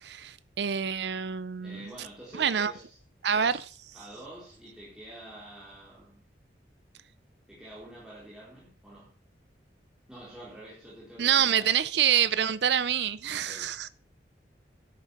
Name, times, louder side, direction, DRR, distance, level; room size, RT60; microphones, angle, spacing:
voice 1, 0.0-1.9 2.4-2.7 3.2-3.6 11.2-13.9, right 8 dB, 70° right, 0.6 m, -26 dB
voice 2, 1.6-3.0 3.3-6.2 7.5-9.2 10.1-11.7 13.3-13.7, right 1 dB, 5° right, 4.0 m, -48 dB
11.5 x 9.3 x 5.9 m
head